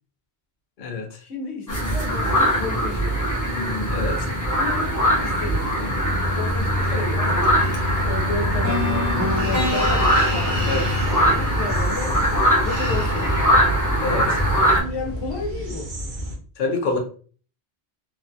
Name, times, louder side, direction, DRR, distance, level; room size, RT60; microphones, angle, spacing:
voice 1, 1.2-3.2 4.5-6.0 6.3-7.5 8.0-12.2 12.6-13.6 14.6-16.0, left 3 dB, 85° left, 1.1 m, -33 dB
sound 1, 1.7-14.8, equal, 25° left, 0.5 m, -21 dB
voice 2, 3.9-4.3 6.9-7.0 10.7-10.9 14.0-14.4 16.6-17.0, left 3 dB, 55° left, 0.7 m, -26 dB
sound 2, 7.6-16.4, right 1 dB, 55° right, 0.8 m, -31 dB
sound 3, 8.6-12.6, left 3 dB, 20° right, 0.7 m, -28 dB
3.0 x 2.3 x 2.6 m
omnidirectional pair, 1.1 m